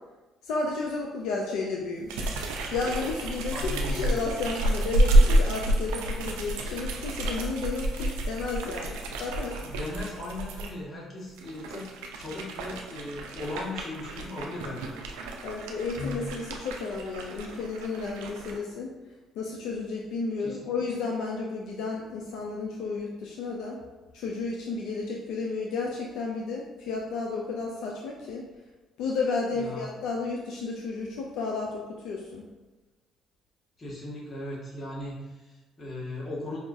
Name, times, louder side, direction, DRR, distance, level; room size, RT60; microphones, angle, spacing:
voice 1, 0.4-2.3 2.7-3.6 3.9-9.6 15.4-18.9 19.4-23.8 24.1-28.5 29.0-32.4, left 4 dB, 75° left, -1 dB, 0.4 m, -32 dB
sound 1, 2.1-10.7 11.3-18.6, right 1 dB, 85° right, 0.4 m, -29 dB
voice 2, 3.5-4.1 9.3-11.9 12.2-15.0 20.4-20.7 29.5-29.9 33.8-36.6, left 1 dB, 35° left, -5 dB, 1.4 m, -38 dB
4.9 x 2.3 x 2.5 m, 1.2 s
supercardioid pair, 65°, 0 cm